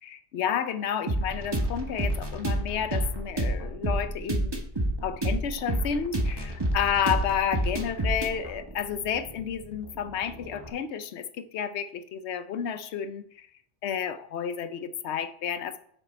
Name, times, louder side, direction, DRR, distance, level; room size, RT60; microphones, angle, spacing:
voice 1, 0.0-4.6 5.0-13.5 13.8-15.8, left 8 dB, 90° left, 11 dB, 0.9 m, -31 dB
sound 1, 1.1-10.7, right 1 dB, 25° right, 1.3 m, -30 dB
6.9 x 6.4 x 4.4 m, 0.64 s
omnidirectional pair, 1.1 m